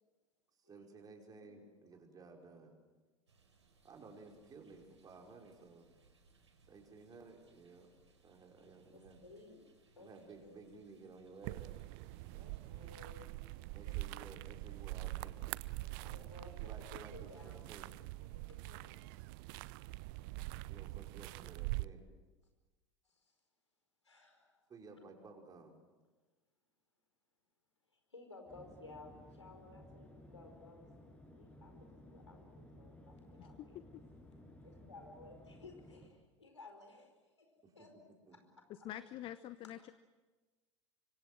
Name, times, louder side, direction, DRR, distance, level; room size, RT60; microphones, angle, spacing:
voice 1, 0.7-2.7 3.8-5.9 6.7-7.9 8.2-9.2 10.0-11.8 13.7-15.4 16.6-17.9 20.6-22.0 24.7-25.7 37.6-37.7 38.3-38.4, right 4 dB, 25° right, 2 dB, 5.3 m, -55 dB
voice 2, 1.3-1.9 8.9-9.6 10.0-10.1 10.4-10.7 12.3-13.4 13.8-13.9 15.8-17.6 18.2-19.1 23.0-23.3 24.0-24.7 27.9-30.9 31.3-33.8 34.6-37.1 37.4-37.5 37.7-37.9 38.3-38.4, left 3 dB, 80° left, 4 dB, 5.0 m, -57 dB
sound 1, 3.3-13.2, right 4 dB, 75° right, 4.8 m, -69 dB
sound 2, 11.4-21.9, right 20 dB, 50° right, 0.7 m, -44 dB
sound 3, 28.5-36.1, left 1 dB, 10° left, 6.2 m, -57 dB
voice 3, 33.4-34.0 38.7-39.9, left 12 dB, 35° left, 15 dB, 0.9 m, -47 dB
25.0 x 25.0 x 7.7 m, 1.3 s
figure-of-eight pair, 80°, 15 cm